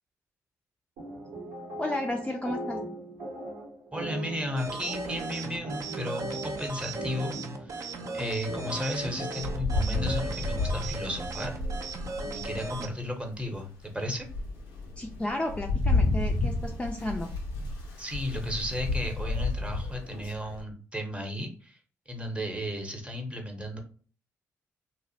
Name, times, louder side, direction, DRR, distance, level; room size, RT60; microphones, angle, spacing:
sound 1, 1.0-12.7, right 1 dB, 80° right, 0.7 m, -40 dB
voice 1, 1.8-2.8 15.0-17.3, left 1 dB, 15° left, 1 dB, 0.4 m, -32 dB
voice 2, 3.9-11.6 12.4-14.3 18.0-21.8 22.1-23.8, equal, 15° right, 3 dB, 0.8 m, -34 dB
sound 2, 4.6-12.9, right 3 dB, 50° right, 0.4 m, -38 dB
Rain, 9.4-12.9 13.4-13.5 14.0-20.6, left 2 dB, 85° left, 0.5 m, -31 dB
2.5 x 2.0 x 2.6 m, 0.41 s
hypercardioid pair, 45°, 7 cm